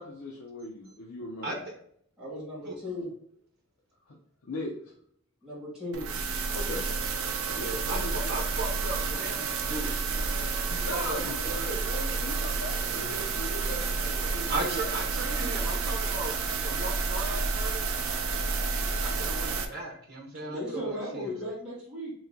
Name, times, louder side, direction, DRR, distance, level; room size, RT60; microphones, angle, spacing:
voice 1, 0.0-1.5 4.1-4.2 4.4-4.7 6.5-6.9 7.5-8.3 10.8-14.8, left 1 dB, 85° left, -2 dB, 0.6 m, -38 dB
voice 2, 2.2-3.1 5.4-6.0 20.4-22.1, left 1 dB, 5° right, -9 dB, 1.2 m, -36 dB
sound 1, 5.9-19.6, right 4 dB, 80° right, 0.5 m, -30 dB
voice 3, 7.8-10.4 10.7-11.6 12.8-13.0 14.5-17.8 19.0-21.3, right 2 dB, 45° right, -1 dB, 1.0 m, -36 dB
3.1 x 2.7 x 3.6 m, 0.65 s
head